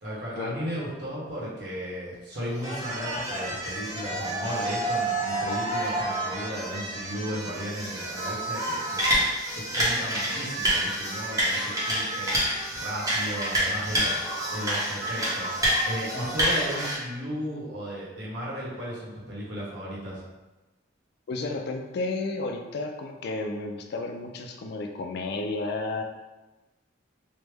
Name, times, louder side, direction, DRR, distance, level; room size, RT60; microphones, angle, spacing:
voice 1, 0.0-20.2, equal, 60° right, -7 dB, 1.0 m, -35 dB
sound 1, 2.6-17.0, right 1 dB, 20° right, 0.7 m, -28 dB
voice 2, 21.3-26.0, left 3 dB, 60° left, 3 dB, 0.3 m, -32 dB
3.2 x 2.0 x 3.3 m, 1.1 s
head